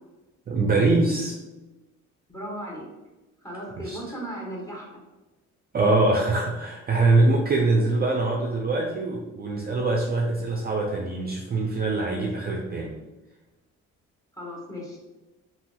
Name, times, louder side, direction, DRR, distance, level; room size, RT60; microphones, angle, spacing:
voice 1, 0.5-1.4 3.8-4.0 5.7-12.9, right 2 dB, 30° right, -1 dB, 0.4 m, -23 dB
voice 2, 2.3-2.9 3.4-4.9 14.3-15.0, equal, 10° left, -3 dB, 0.9 m, -36 dB
2.9 x 2.8 x 2.2 m, 1.1 s
cardioid pair, 90°, 30 cm